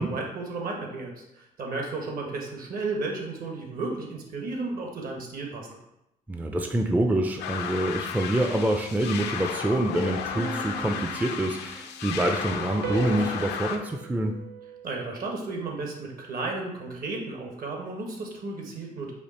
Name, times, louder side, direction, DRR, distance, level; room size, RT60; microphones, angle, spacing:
voice 1, 0.0-5.7 14.8-19.1, right 3 dB, 60° right, 0 dB, 1.3 m, -33 dB
voice 2, 6.3-14.4, right 1 dB, 10° right, 4 dB, 0.4 m, -26 dB
sound 1, 7.4-13.8, left 7 dB, 85° left, 0.5 m, -34 dB
sound 2, 10.3-12.1 12.8-15.5, right 7 dB, 85° right, 0.5 m, -39 dB
4.9 x 2.5 x 4.2 m, 0.87 s
cardioid pair, 90°, 17 cm